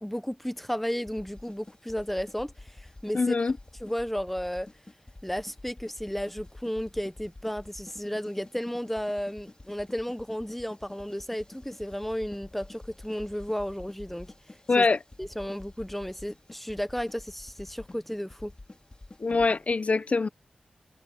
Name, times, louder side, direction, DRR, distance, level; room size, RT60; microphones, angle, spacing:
voice 1, 0.0-3.3 3.8-4.7 5.2-14.3 14.8-14.9 15.2-18.5, equal, 5° left, 1.1 m, -33 dB
sound 1, 1.0-19.7, left 2 dB, 35° left, 3.8 m, -49 dB
voice 2, 3.1-3.5 14.7-15.0 19.2-20.3, left 4 dB, 55° left, 0.8 m, -24 dB
cardioid pair, 45°, 3 cm